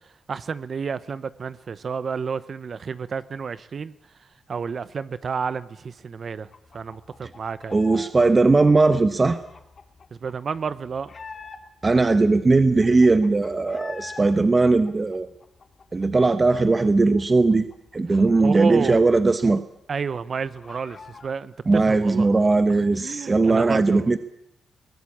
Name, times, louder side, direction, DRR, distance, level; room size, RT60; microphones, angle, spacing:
voice 1, 0.3-3.9 4.5-7.8 10.2-11.1 18.1-19.0 19.9-22.3 22.9-24.1, right 5 dB, 50° right, 16 dB, 0.8 m, -30 dB
sound 1, 6.5-8.1 8.4-11.9 12.3-12.4 12.6-14.2 14.6-16.3 16.6-16.7 17.0-19.5 19.8-19.9 20.2-21.4, left 4 dB, 45° left, 2.5 m, -44 dB
voice 2, 7.7-9.4 11.8-15.3 15.9-17.7 17.9-19.6 21.7-24.2, right 3 dB, 30° right, 11 dB, 1.0 m, -19 dB
21.5 x 17.5 x 8.6 m, 0.82 s
cardioid pair, 85°, 0 cm